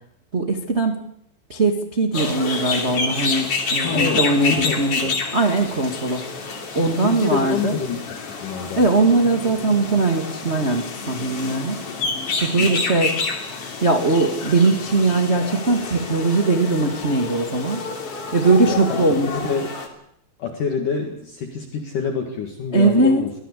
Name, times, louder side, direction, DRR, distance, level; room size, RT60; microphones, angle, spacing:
voice 1, 0.3-1.0 1.5-7.7 8.7-11.8 12.4-13.1 13.8-17.8 18.3-19.5 22.7-23.2, right 3 dB, 80° right, 4 dB, 0.6 m, -20 dB
sound 1, 2.1-19.9, left 4 dB, 35° left, 3.2 m, -28 dB
voice 2, 3.8-5.1 6.8-8.0 8.4-8.9 12.6-12.7 18.6-19.7 20.4-23.3, left 6 dB, 55° left, 4 dB, 3.0 m, -27 dB
24.0 x 16.5 x 8.4 m, 0.72 s
omnidirectional pair, 5.2 m